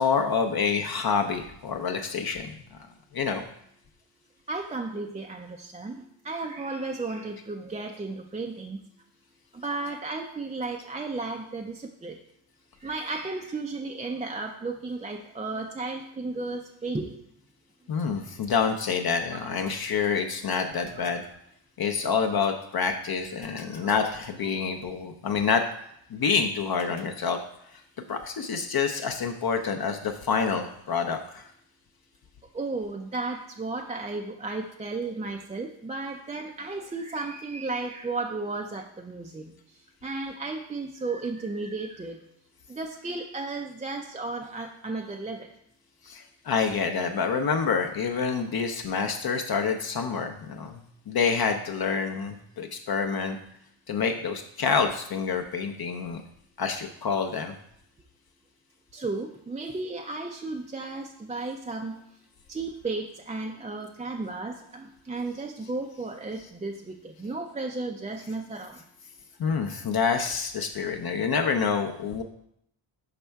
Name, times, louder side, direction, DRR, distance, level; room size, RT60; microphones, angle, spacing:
voice 1, 0.0-2.8 3.1-3.4 17.9-21.2 21.8-25.6 26.1-27.4 27.7-27.8 28.1-31.5 46.0-53.4 53.9-56.2 56.6-57.5 69.4-72.2, left 5 dB, 50° left, 5 dB, 0.6 m, -27 dB
voice 2, 4.5-8.8 9.5-12.2 12.8-17.1 21.0-21.1 23.4-23.9 24.6-24.7 32.5-39.5 40.0-42.2 42.7-45.5 58.9-62.0 62.5-68.8, right 3 dB, 15° right, 2 dB, 0.3 m, -34 dB
5.8 x 5.3 x 3.4 m, 0.74 s
wide cardioid pair, 115°, 48 cm